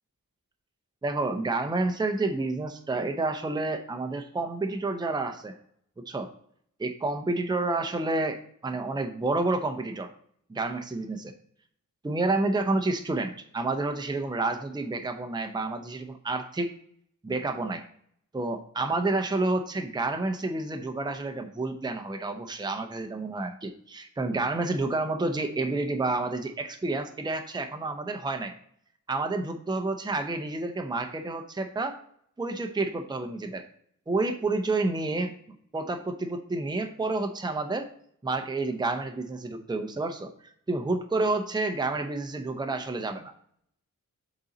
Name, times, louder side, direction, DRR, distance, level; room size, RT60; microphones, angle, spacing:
voice 1, 1.0-5.5 6.0-6.3 6.8-10.1 10.5-11.3 12.0-16.7 17.2-17.8 18.3-28.5 29.1-32.0 32.4-33.7 34.1-35.3 35.7-37.9 38.2-40.3 40.7-43.3, right 2 dB, 15° right, 5 dB, 0.6 m, -29 dB
6.9 x 4.0 x 3.8 m, 0.65 s
wide cardioid pair, 115°, 34 cm